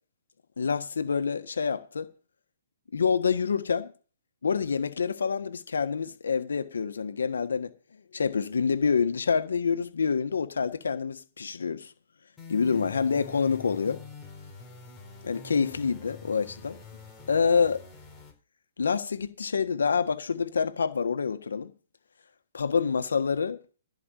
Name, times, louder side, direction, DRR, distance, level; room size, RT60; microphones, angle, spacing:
voice 1, 0.6-2.1 2.9-3.9 4.4-7.7 8.1-11.9 12.5-14.0 15.2-16.8 17.3-17.8 18.8-21.7 22.5-23.6, left 5 dB, 90° left, 1.5 m, -27 dB
sound 1, 12.4-18.3, left 3 dB, 10° left, 4.2 m, -46 dB
15.0 x 5.2 x 9.2 m
hypercardioid pair, 155°, 0 cm